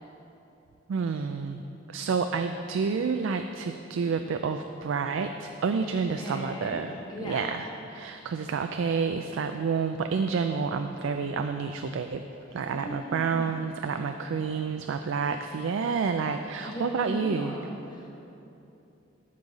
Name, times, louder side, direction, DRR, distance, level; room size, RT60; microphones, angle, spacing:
voice 1, 0.9-1.6 1.9-7.0 7.2-12.2 12.5-17.6, right 5 dB, 85° right, 7 dB, 0.4 m, -29 dB
voice 2, 5.8-6.8 7.1-7.5 12.5-13.6 16.6-18.1, equal, 25° left, -3 dB, 1.3 m, -38 dB
13.5 x 5.4 x 4.0 m, 2.9 s
head